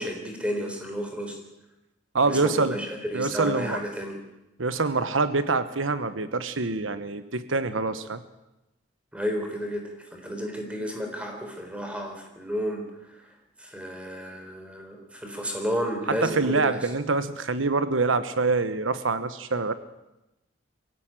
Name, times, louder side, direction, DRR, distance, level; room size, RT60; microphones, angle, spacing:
voice 1, 0.0-1.4 2.2-4.2 9.1-16.8, equal, 5° right, 3 dB, 3.9 m, -32 dB
voice 2, 2.1-2.8 3.1-3.8 4.6-8.2 16.2-19.7, right 3 dB, 80° right, 12 dB, 1.1 m, -25 dB
23.0 x 16.5 x 9.0 m, 0.94 s
head